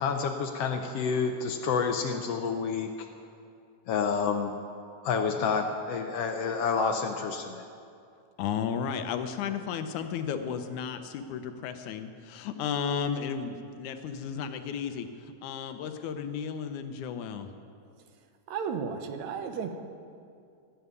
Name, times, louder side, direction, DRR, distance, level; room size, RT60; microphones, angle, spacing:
voice 1, 0.0-2.9 3.9-4.6 5.0-7.6, left 5 dB, 70° left, 5 dB, 1.6 m, -29 dB
voice 2, 8.4-17.5, left 7 dB, 85° left, 8 dB, 2.3 m, -34 dB
voice 3, 18.5-19.7, right 6 dB, 75° right, 6 dB, 2.3 m, -33 dB
16.5 x 7.2 x 9.6 m, 2.4 s
omnidirectional pair, 3.4 m